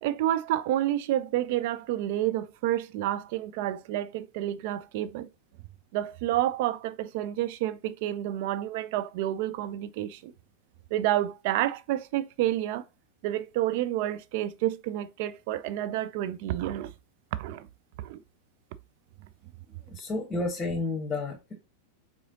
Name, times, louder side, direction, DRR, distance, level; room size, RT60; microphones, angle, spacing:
voice 1, 0.0-5.3 5.9-10.3 10.9-12.8 13.2-16.9 17.3-17.7 18.0-18.2, right 13 dB, 50° right, 0.4 m, -29 dB
voice 2, 19.9-21.5, left 3 dB, 15° left, 1.2 m, -31 dB
4.7 x 3.7 x 2.7 m
figure-of-eight pair, 90°, 0 cm